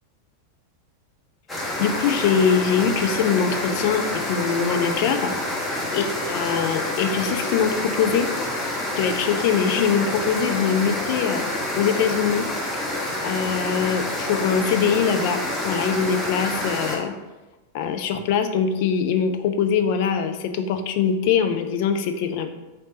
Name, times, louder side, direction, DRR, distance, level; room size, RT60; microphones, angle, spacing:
sound 1, 1.5-17.0, left 1 dB, 10° left, 0.8 m, -28 dB
voice 1, 1.8-4.0 4.3-5.3 5.6-8.3 9.0-11.4 11.8-12.5 12.7-12.8 13.2-17.1 17.7-22.5, left 7 dB, 50° left, 7 dB, 0.3 m, -23 dB
3.2 x 2.7 x 3.9 m, 1.1 s
figure-of-eight pair, 90°, 0 cm